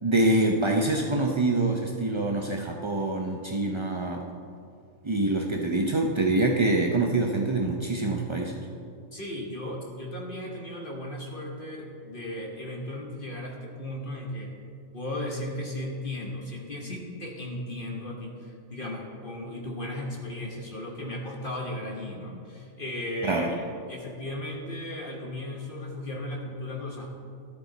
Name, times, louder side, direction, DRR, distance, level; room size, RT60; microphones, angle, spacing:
voice 1, 0.0-4.2 5.0-8.7 23.2-23.5, right 2 dB, 40° right, 1 dB, 0.4 m, -25 dB
voice 2, 9.1-14.5 14.9-23.5 23.9-27.1, left 1 dB, 40° left, 0 dB, 1.3 m, -36 dB
13.0 x 11.0 x 4.0 m, 2.4 s
omnidirectional pair, 1.4 m